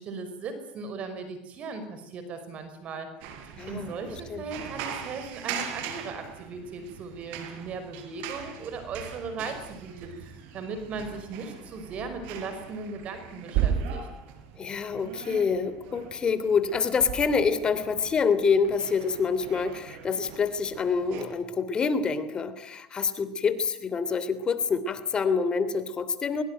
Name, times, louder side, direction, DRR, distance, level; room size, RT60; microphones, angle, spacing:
voice 1, 0.0-3.1 3.7-14.1, right 4 dB, 45° right, 9 dB, 5.6 m, -37 dB
sound 1, 3.2-21.2, right 8 dB, 70° right, 5.4 m, -38 dB
voice 2, 3.6-3.9 4.3-4.4 14.6-26.4, left 5 dB, 30° left, 12 dB, 3.0 m, -26 dB
23.0 x 22.5 x 9.3 m, 0.78 s
supercardioid pair, 110°, 3 cm